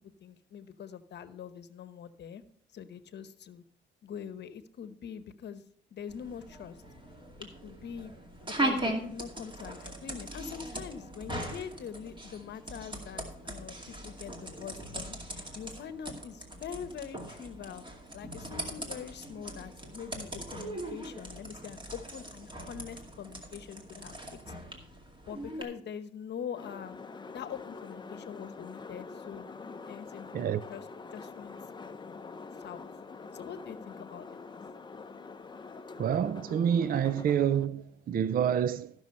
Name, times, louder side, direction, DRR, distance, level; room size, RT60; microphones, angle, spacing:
voice 1, 0.2-2.4 2.7-3.6 4.0-5.6 5.9-6.8 7.4-8.1 8.4-17.8 18.1-24.4 25.3-27.0 27.3-29.5 29.9-30.3 30.7-30.9 31.1-31.6 32.6-32.8 33.3-34.6, left 7 dB, 60° left, 0.9 m, -43 dB
sound 1, 6.1-25.6, right 1 dB, 25° right, 2.3 m, -39 dB
sound 2, 26.5-37.7, left 4 dB, 20° left, 0.7 m, -45 dB
voice 2, 36.0-38.9, right 9 dB, 50° right, 0.4 m, -28 dB
14.0 x 6.2 x 5.4 m
cardioid pair, 90°, 20 cm